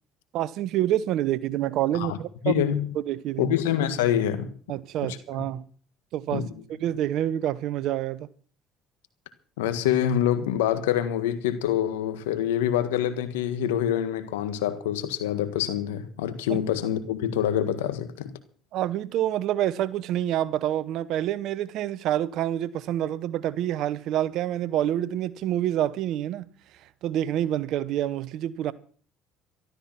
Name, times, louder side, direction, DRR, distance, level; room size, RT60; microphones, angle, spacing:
voice 1, 0.3-2.6 2.9-3.5 4.7-5.6 6.1-6.5 6.8-8.3 16.5-16.6 18.7-26.5 27.0-28.7, right 12 dB, 65° right, 1.0 m, -27 dB
voice 2, 2.4-2.9 3.4-4.5 5.0-5.5 6.3-6.5 9.6-18.3, left 10 dB, 90° left, 1.6 m, -26 dB
13.0 x 13.0 x 5.9 m
supercardioid pair, 70°, 0 cm